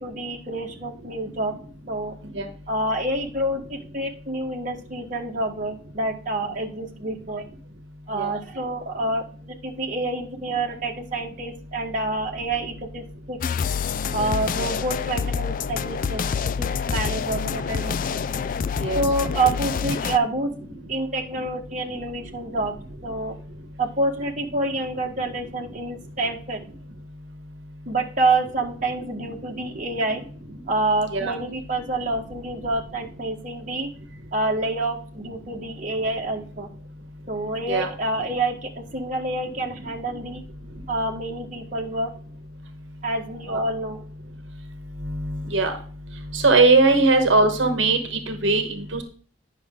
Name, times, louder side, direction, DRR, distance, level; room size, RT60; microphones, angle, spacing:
voice 1, 0.0-1.5 1.9-2.1 2.7-7.4 8.1-13.4 14.1-16.3 16.6-18.2 18.9-20.5 20.9-22.7 23.0-23.4 23.8-26.6 27.9-30.2 30.7-33.9 34.3-36.7 37.3-40.4 40.9-42.1 43.0-44.0, right 2 dB, 40° right, 0 dB, 1.3 m, -27 dB
sound 1, 13.4-20.2, left 6 dB, 45° left, 0.3 m, -27 dB
voice 2, 45.0-45.7 46.3-49.0, right 3 dB, 70° right, 6 dB, 1.2 m, -20 dB
9.6 x 5.9 x 3.7 m, 0.42 s
head